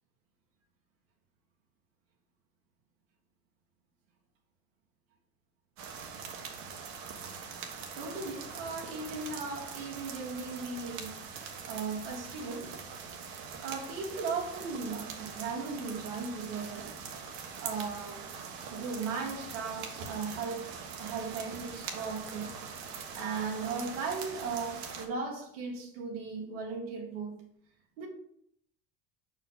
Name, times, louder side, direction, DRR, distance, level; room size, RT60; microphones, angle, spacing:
sound 1, 5.8-25.1, right 6 dB, 65° right, 1.3 m, -43 dB
voice 1, 7.9-11.1 11.6-12.7 13.6-17.0 17.3-18.3 18.7-20.7 21.0-22.5 22.8-27.4 28.0-28.1, right 4 dB, 85° right, 1.6 m, -37 dB
5.5 x 4.8 x 3.9 m
supercardioid pair, 105°, 30 cm